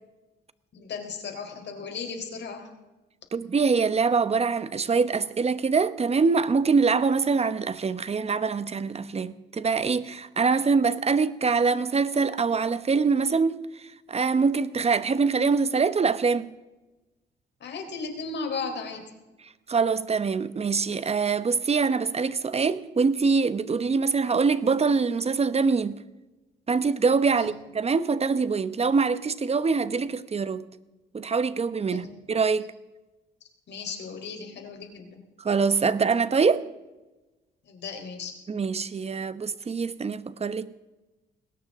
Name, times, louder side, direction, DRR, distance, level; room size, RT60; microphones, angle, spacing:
voice 1, 0.7-2.7 17.6-19.0 27.4-27.5 31.9-32.2 33.7-35.2 37.6-38.3, left 4 dB, 60° left, 4.0 m, -36 dB
voice 2, 3.3-16.5 19.7-26.0 26.7-30.6 31.1-32.7 35.4-36.6 38.5-40.7, right 5 dB, 30° right, 1.0 m, -24 dB
20.5 x 18.0 x 3.7 m
cardioid pair, 90°, 20 cm